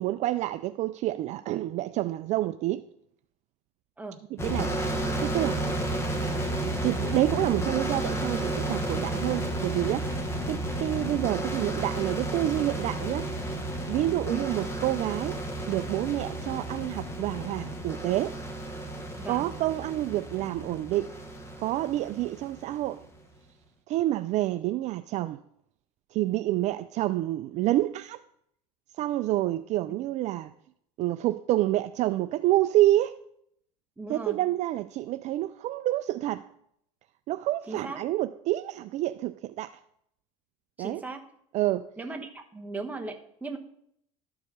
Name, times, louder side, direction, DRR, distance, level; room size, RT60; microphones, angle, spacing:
voice 1, 0.0-2.8 4.3-5.8 6.6-10.1 10.5-13.3 13.9-15.4 15.7-18.4 19.3-21.1 21.6-23.0 23.9-25.4 26.1-28.2 29.0-30.5 31.0-33.2 34.1-36.5 37.3-39.7 40.8-41.0 41.5-41.9, right 15 dB, 45° right, 0.4 m, -28 dB
sound 1, 4.4-23.0, right 1 dB, 15° left, 1.4 m, -32 dB
voice 2, 19.1-19.5 34.0-34.4 37.7-38.0 40.8-41.2 42.0-43.6, right 3 dB, 10° right, 1.1 m, -38 dB
12.5 x 4.7 x 5.5 m
supercardioid pair, 125°, 16 cm